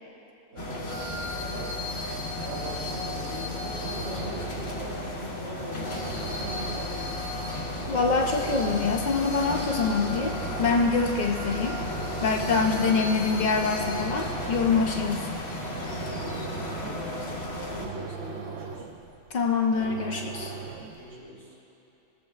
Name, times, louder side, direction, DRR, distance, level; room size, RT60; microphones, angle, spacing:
voice 1, 0.5-1.8 2.4-7.3 16.2-18.9 20.6-21.6, equal, 20° right, -7 dB, 1.7 m, -42 dB
sound 1, 0.6-17.9, left 1 dB, 50° left, 1.2 m, -34 dB
sound 2, 3.7-21.1, right 5 dB, 65° right, 0.8 m, -40 dB
voice 2, 7.9-11.8 12.2-15.3 19.3-20.5, left 4 dB, 85° left, 2 dB, 0.4 m, -25 dB
18.0 x 7.2 x 2.4 m, 3.0 s
omnidirectional pair, 1.4 m